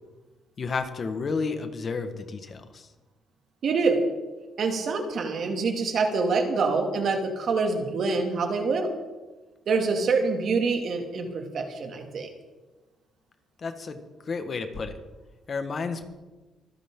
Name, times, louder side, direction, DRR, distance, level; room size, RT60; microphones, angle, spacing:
voice 1, 0.6-2.9 13.6-15.0 15.5-16.0, left 4 dB, 45° left, 7 dB, 1.7 m, -31 dB
voice 2, 3.6-4.0 4.6-8.9 9.7-12.3, right 4 dB, 60° right, 3 dB, 2.6 m, -26 dB
25.0 x 10.5 x 3.9 m, 1.2 s
cardioid pair, 90°, 0 cm